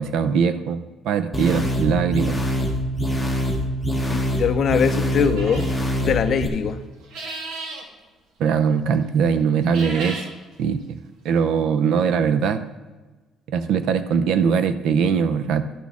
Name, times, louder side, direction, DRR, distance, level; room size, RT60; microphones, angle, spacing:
voice 1, 0.0-2.4 8.4-10.2 10.6-11.0 11.2-12.6 13.5-15.7, right 6 dB, 65° right, 11 dB, 0.5 m, -21 dB
sound 1, 1.3-6.5, equal, ahead, 1.0 m, -24 dB
voice 2, 4.1-5.7 6.0-6.8, left 7 dB, 40° left, 10 dB, 0.4 m, -22 dB
sound 2, 5.4-5.8 7.0-7.8 9.6-10.3, right 2 dB, 85° right, 1.5 m, -33 dB
12.0 x 6.2 x 3.6 m, 1.2 s
cardioid pair, 175°, 0 cm